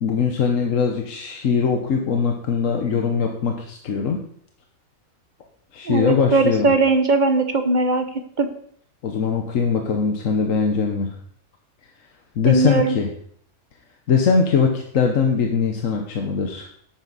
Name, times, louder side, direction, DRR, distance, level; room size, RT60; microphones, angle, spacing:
voice 1, 0.0-4.2 5.7-6.7 9.0-11.1 12.4-13.1 14.1-16.7, left 6 dB, 75° left, 3 dB, 1.4 m, -21 dB
voice 2, 5.9-8.1 8.4-8.5 12.5-13.0, right 3 dB, 40° right, 8 dB, 0.9 m, -19 dB
11.0 x 8.9 x 4.1 m, 0.64 s
omnidirectional pair, 1.4 m